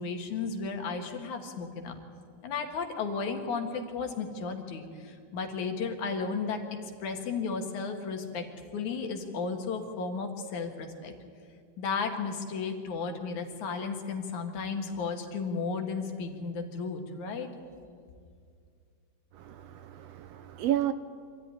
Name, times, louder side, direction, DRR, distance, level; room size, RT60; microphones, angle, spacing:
voice 1, 0.0-2.0 2.4-6.6 7.0-8.4 8.7-11.1 11.8-17.5, left 5 dB, 75° left, 4 dB, 3.2 m, -34 dB
voice 2, 19.3-20.9, right 12 dB, 75° right, 10 dB, 1.6 m, -32 dB
26.0 x 14.0 x 9.9 m, 2.2 s
omnidirectional pair, 3.4 m